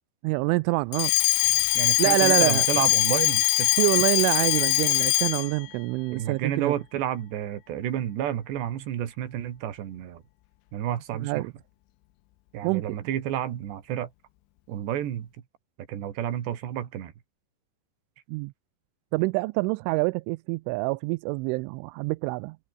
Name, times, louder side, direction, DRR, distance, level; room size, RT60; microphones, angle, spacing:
voice 1, 0.2-1.1 2.0-2.6 3.8-6.7 11.2-11.5 12.6-12.9 18.3-18.5 19.1-22.6, right 25 dB, 90° right, 3.0 m, -26 dB
Alarm, 0.9-5.6, left 19 dB, 90° left, 3.4 m, -22 dB
voice 2, 1.7-3.8 6.1-10.2 10.7-11.5 12.5-14.1 14.7-15.3 15.9-17.1, right 11 dB, 65° right, 4.3 m, -30 dB
omnidirectional pair, 5.5 m